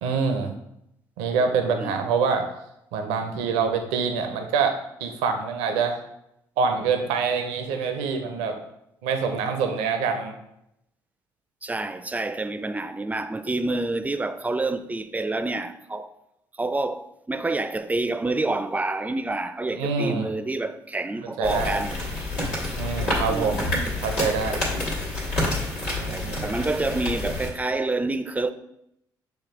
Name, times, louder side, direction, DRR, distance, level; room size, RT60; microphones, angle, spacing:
voice 1, 0.0-0.5 1.2-2.4 2.9-6.0 6.6-8.6 9.0-10.3 19.8-20.3 21.4-21.7 22.8-23.7 24.0-24.6 26.0-26.4, right 5 dB, 75° right, 0.5 m, -25 dB
voice 2, 1.8-2.1 11.6-16.1 16.6-22.0 23.3-23.7 26.1-28.5, right 2 dB, 15° right, 0.4 m, -28 dB
sound 1, 21.4-27.5, left 2 dB, 85° left, 1.4 m, -28 dB
6.5 x 2.3 x 3.1 m
hypercardioid pair, 45°, 10 cm